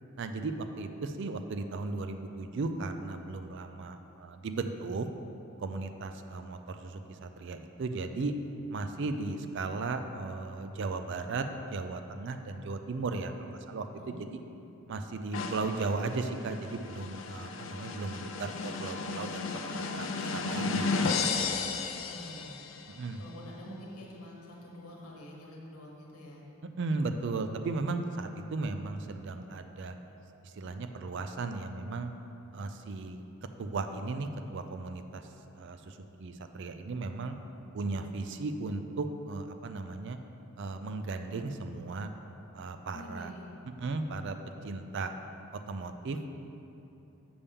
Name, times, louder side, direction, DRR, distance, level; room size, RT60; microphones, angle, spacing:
voice 1, 0.2-5.1 5.6-8.3 8.7-11.4 11.7-14.4 14.9-19.6 19.9-20.9 21.2-21.3 22.9-23.2 26.8-30.0 30.6-32.1 32.5-33.2 33.6-35.2 35.6-37.3 37.7-40.2 40.6-42.1 42.5-43.3 43.8-44.4 44.6-45.1 45.7-46.3, right 3 dB, 55° right, 7 dB, 0.4 m, -36 dB
voice 2, 14.0-14.7 22.0-22.6 23.2-26.5 42.9-43.5, equal, 85° left, -2 dB, 1.2 m, -47 dB
sound 1, 15.3-22.9, left 4 dB, 60° left, 0.5 m, -34 dB
6.9 x 6.8 x 3.5 m, 2.8 s
head